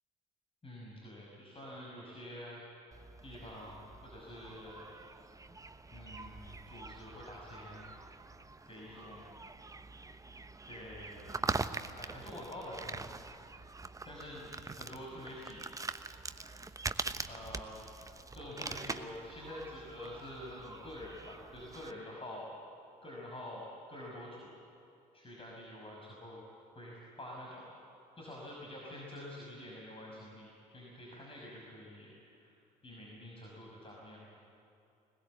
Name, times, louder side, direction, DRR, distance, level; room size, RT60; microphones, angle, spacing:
voice 1, 0.6-2.6 3.2-4.9 5.9-7.8 8.7-9.3 10.6-11.4 12.0-13.1 14.0-15.7 17.3-17.7 18.3-22.5 23.0-24.5 25.1-26.4 26.7-27.8 28.2-32.6 32.8-34.2, left 1 dB, 25° left, -3 dB, 5.7 m, -47 dB
sound 1, 2.9-21.9, right 3 dB, 15° right, 1.0 m, -43 dB
22.0 x 20.5 x 8.3 m, 2.7 s
figure-of-eight pair, 55°, 21 cm